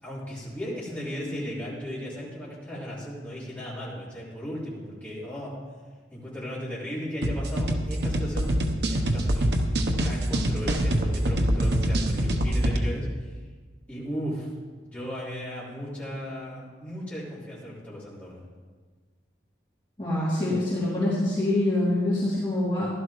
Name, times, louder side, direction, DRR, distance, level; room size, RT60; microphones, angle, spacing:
voice 1, 0.0-5.6 6.1-8.5 8.9-9.5 10.0-13.4 13.9-14.5 14.8-18.4, equal, 10° left, -10 dB, 4.3 m, -36 dB
sound 1, 7.2-12.8, right 1 dB, 60° right, 1.0 m, -25 dB
voice 2, 20.0-22.9, left 1 dB, 30° left, -10 dB, 3.1 m, -25 dB
15.5 x 11.5 x 3.2 m, 1.4 s
head